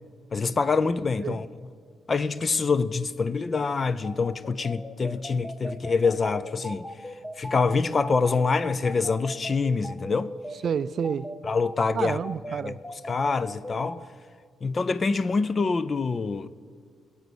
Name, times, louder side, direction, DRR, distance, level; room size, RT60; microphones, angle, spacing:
voice 1, 0.3-1.5 2.1-6.9 7.4-10.3 11.4-12.2 13.1-14.0 14.6-16.5, left 4 dB, 30° left, 0.4 m, -25 dB
sound 1, 4.0-13.9, left 1 dB, 10° left, 0.8 m, -38 dB
voice 2, 10.6-11.3 11.9-12.8, right 7 dB, 45° right, 0.4 m, -29 dB
20.5 x 8.3 x 6.1 m
cardioid pair, 165°, 0 cm